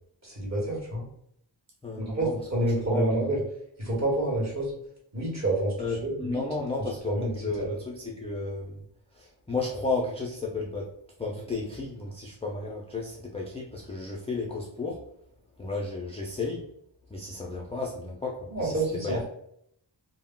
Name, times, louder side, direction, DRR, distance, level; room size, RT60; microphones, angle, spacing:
voice 1, 0.2-1.1 2.0-3.4 3.8-4.7 5.1-6.4 7.1-7.7 18.5-19.2, right 1 dB, 35° right, -4 dB, 1.1 m, -28 dB
voice 2, 1.8-2.3 2.9-3.1 5.8-8.8 9.1-10.9 11.2-15.0 15.6-16.7 17.1-18.8 19.0-19.2, left 3 dB, 15° left, -2 dB, 0.3 m, -33 dB
2.2 x 2.1 x 3.6 m, 0.71 s
wide cardioid pair, 110°, 47 cm